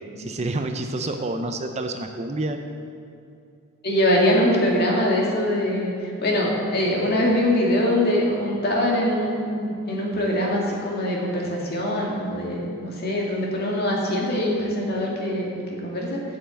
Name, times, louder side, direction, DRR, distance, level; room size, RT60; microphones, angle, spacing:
voice 1, 0.2-2.6, right 2 dB, 30° right, 5 dB, 0.5 m, -28 dB
voice 2, 3.8-16.2, left 1 dB, 45° left, -2 dB, 2.1 m, -23 dB
9.0 x 6.9 x 7.7 m, 2.5 s
head